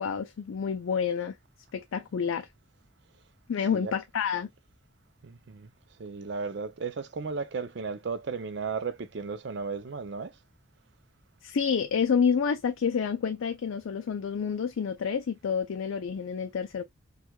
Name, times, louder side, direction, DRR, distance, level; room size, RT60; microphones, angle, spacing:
voice 1, 0.0-1.3 1.7-2.5 3.5-4.5 11.4-16.8, left 6 dB, 80° left, 0.4 m, -28 dB
voice 2, 5.2-5.7 6.0-10.3, right 5 dB, 55° right, 0.5 m, -35 dB
4.4 x 2.3 x 2.2 m
head